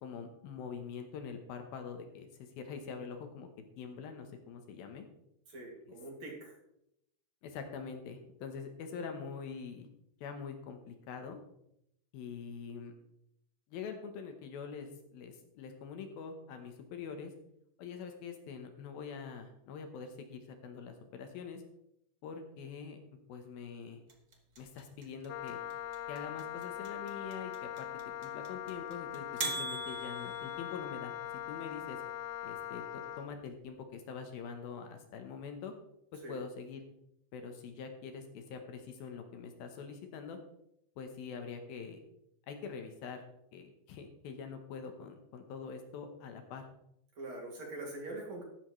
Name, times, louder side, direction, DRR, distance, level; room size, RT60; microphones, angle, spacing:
voice 1, 0.0-3.5 3.8-5.1 5.9-6.0 7.4-9.9 10.2-11.4 12.1-12.9 13.7-17.3 17.8-21.6 22.2-23.0 23.3-24.0 24.6-25.6 26.1-27.9 28.2-31.1 31.5-32.0 32.4-35.7 36.1-36.8 37.3-40.4 41.0-42.0 42.5-43.2 43.5-46.6, left 6 dB, 70° left, 6 dB, 2.8 m, -44 dB
voice 2, 5.5-6.6 36.2-36.4 47.2-48.4, right 2 dB, 50° right, -1 dB, 3.4 m, -43 dB
sound 1, 24.1-31.1, right 4 dB, 70° right, 0.8 m, -41 dB
Wind instrument woodwind instrument, 25.3-33.3, left 11 dB, 90° left, 2.8 m, -41 dB
14.0 x 11.5 x 3.2 m, 0.78 s
omnidirectional pair, 4.6 m